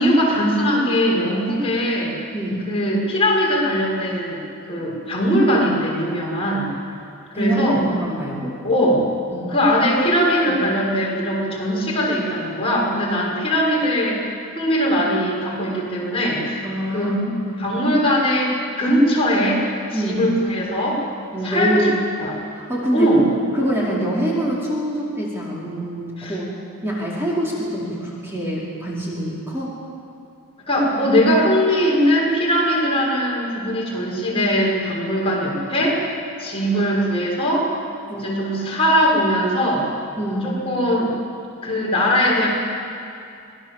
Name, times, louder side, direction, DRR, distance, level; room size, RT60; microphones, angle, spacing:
voice 1, 0.0-2.2 2.7-6.7 7.3-7.8 8.6-9.1 9.5-14.2 14.5-16.7 16.9-17.1 17.6-21.0 21.4-21.9 22.2-22.4 22.9-23.2 26.2-26.4 30.7-36.0 36.4-37.7 38.2-39.9 40.4-41.1 41.6-42.5, equal, 25° left, -4 dB, 6.7 m, -20 dB
voice 2, 7.3-8.6 9.3-9.6 10.1-10.6 16.6-17.6 19.9-20.2 21.3-21.9 22.5-23.1 23.5-26.5 26.8-29.7 38.1-38.4 40.2-40.6, equal, 10° right, -6 dB, 4.9 m, -25 dB
26.5 x 21.0 x 7.6 m, 2.6 s
head